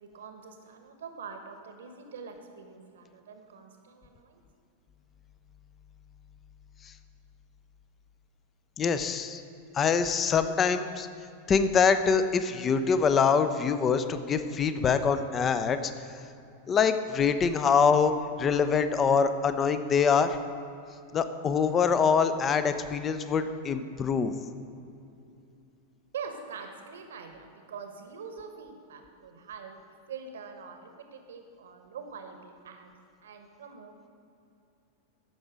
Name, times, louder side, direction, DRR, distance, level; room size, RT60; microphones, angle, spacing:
voice 1, 0.0-4.4 17.3-17.4 26.1-29.8 30.1-32.9 33.2-34.1, right 5 dB, 65° right, 5 dB, 1.1 m, -44 dB
voice 2, 8.8-9.4 9.7-11.1 11.5-15.8 16.7-18.1 18.4-20.4 21.1-24.3, left 6 dB, 25° left, 10 dB, 0.6 m, -24 dB
14.0 x 6.0 x 5.1 m, 2.7 s
figure-of-eight pair, 90°, 0 cm